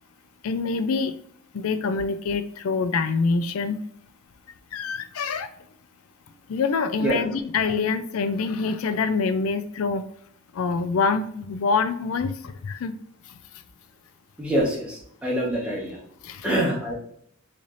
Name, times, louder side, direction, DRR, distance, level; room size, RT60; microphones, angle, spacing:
voice 1, 0.4-1.1 1.5-3.8 4.7-5.5 6.5-10.0 10.5-12.9 16.2-16.5, left 4 dB, 80° left, 11 dB, 0.4 m, -25 dB
voice 2, 14.4-16.0 16.4-16.9, right 1 dB, 5° right, -4 dB, 1.1 m, -25 dB
4.1 x 3.2 x 2.5 m, 0.66 s
head